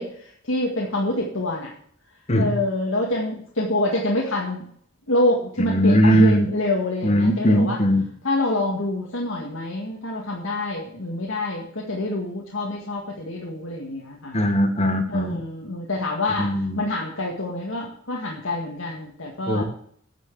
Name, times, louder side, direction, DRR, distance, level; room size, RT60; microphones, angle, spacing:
voice 1, 0.0-1.7 2.3-4.7 5.1-7.8 8.2-14.4 15.1-19.6, left 1 dB, 85° left, -2 dB, 1.9 m, -26 dB
voice 2, 5.6-6.5 7.0-8.0 14.3-15.4 16.4-16.8 19.5-19.6, equal, 35° left, 5 dB, 1.5 m, -19 dB
9.2 x 6.3 x 7.4 m, 0.62 s
head